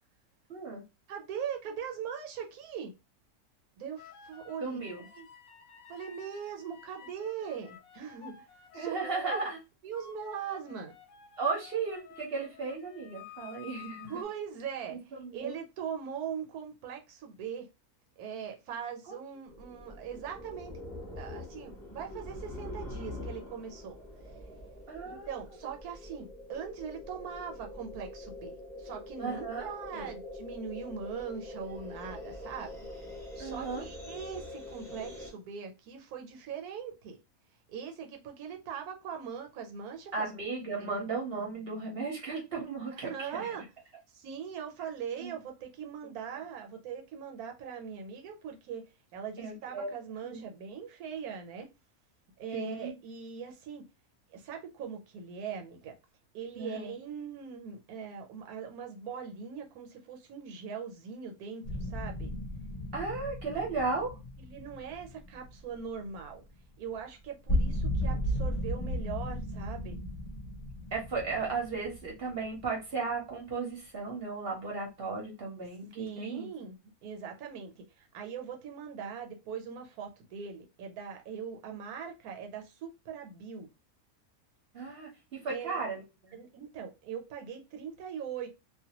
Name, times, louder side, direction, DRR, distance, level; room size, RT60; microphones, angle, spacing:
voice 1, 0.5-0.8 4.6-5.0 8.7-9.6 11.4-14.1 14.9-15.6 19.1-19.2 24.9-25.3 29.2-30.1 33.4-33.8 40.1-43.6 45.2-45.4 49.4-49.9 50.2-50.4 52.5-52.9 56.6-56.9 62.9-64.1 70.9-76.5 84.7-86.4, right 4 dB, 55° right, 0.8 m, -35 dB
voice 2, 1.1-2.9 3.8-4.8 5.1-5.3 5.9-8.4 8.7-9.5 9.8-10.9 14.1-17.7 18.2-20.7 21.2-24.0 25.0-32.7 33.4-37.2 37.7-40.3 40.8-40.9 43.0-43.6 44.1-51.7 52.4-53.8 54.3-55.9 56.3-62.3 64.4-66.4 66.8-70.0 75.9-83.7 85.5-85.8 86.3-88.5, right 7 dB, 85° right, 1.2 m, -41 dB
sound 1, 4.0-9.6 9.9-14.3, left 8 dB, 65° left, 0.9 m, -52 dB
sound 2, 19.5-35.3, left 1 dB, ahead, 0.6 m, -44 dB
sound 3, 61.6-66.5 66.9-67.0 67.2-72.8, equal, 45° left, 0.5 m, -35 dB
2.5 x 2.2 x 2.8 m
omnidirectional pair, 1.5 m